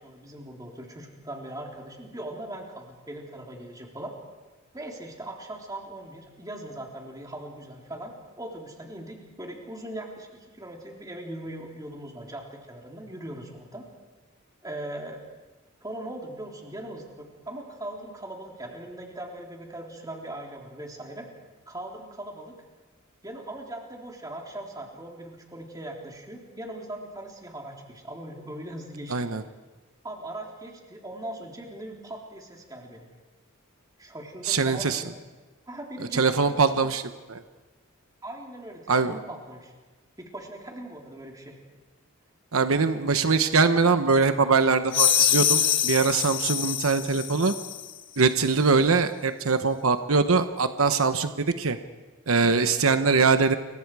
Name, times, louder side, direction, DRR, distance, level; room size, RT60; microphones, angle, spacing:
voice 1, 0.0-4.1 4.7-13.8 14.6-15.2 15.8-21.3 21.7-22.6 23.2-29.4 30.0-33.1 34.0-35.2 35.7-36.6 38.2-39.7 40.2-41.6, right 1 dB, 20° right, 0 dB, 3.7 m, -40 dB
voice 2, 29.1-29.4 34.5-35.0 36.1-37.0 37.3-37.4 38.9-39.1 42.5-47.5 48.2-51.8 52.3-53.5, right 4 dB, 85° right, 9 dB, 1.0 m, -22 dB
sound 1, 44.9-47.9, left 10 dB, 60° left, 1.4 m, -24 dB
29.0 x 23.5 x 4.9 m, 1.3 s
head